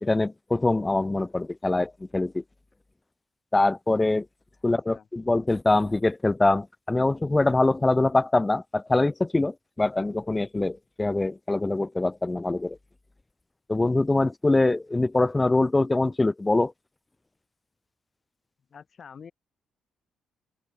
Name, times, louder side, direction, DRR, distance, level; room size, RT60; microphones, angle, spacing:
voice 1, 0.0-2.4 3.5-4.3 4.6-12.8 13.7-16.7, left 2 dB, 15° left, 0.6 m, -24 dB
voice 2, 4.6-5.1 18.7-19.3, left 6 dB, 45° left, 6.2 m, -47 dB
open air
cardioid pair, 90°, 0 cm